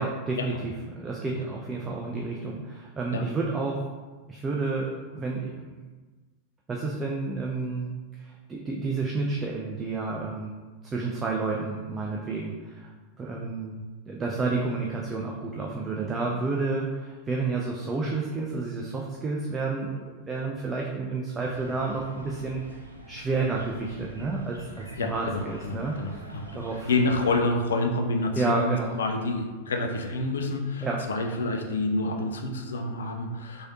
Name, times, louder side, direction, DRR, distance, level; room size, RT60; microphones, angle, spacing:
voice 1, 0.0-3.8 4.3-5.7 6.7-7.9 8.2-10.5 10.8-12.9 13.2-22.6 23.1-26.2 26.5-26.9 28.4-29.0 30.8-31.0, right 3 dB, 20° right, -1 dB, 0.3 m, -30 dB
sound 1, 21.4-27.3, equal, 85° right, 0.4 m, -46 dB
voice 2, 25.0-33.7, left 2 dB, 65° left, 3 dB, 0.4 m, -28 dB
3.1 x 2.7 x 2.7 m, 1.3 s
figure-of-eight pair, 90°, 0 cm